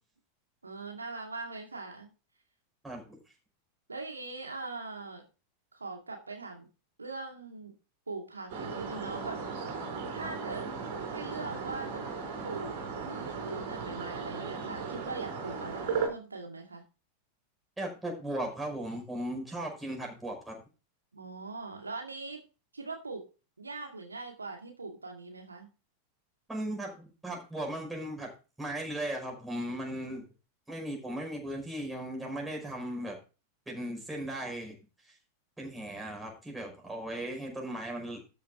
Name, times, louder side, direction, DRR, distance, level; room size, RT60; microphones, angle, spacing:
voice 1, 0.6-2.1 3.9-5.2 5.7-6.7 7.0-7.7 8.1-9.6 10.1-10.7 11.1-12.1 12.4-12.8 13.1-16.8 21.1-22.4 22.7-23.3 23.6-25.7, right 3 dB, 80° right, 2 dB, 2.2 m, -41 dB
voice 2, 2.8-3.2 17.8-20.5 26.5-28.3 28.6-30.2 30.7-33.2 33.7-34.8 35.0-35.2 35.6-38.2, right 1 dB, 5° right, 0 dB, 5.3 m, -37 dB
sound 1, 8.5-16.1, right 5 dB, 50° right, 4.5 m, -36 dB
13.0 x 7.1 x 3.8 m, 0.32 s
figure-of-eight pair, 90°, 0 cm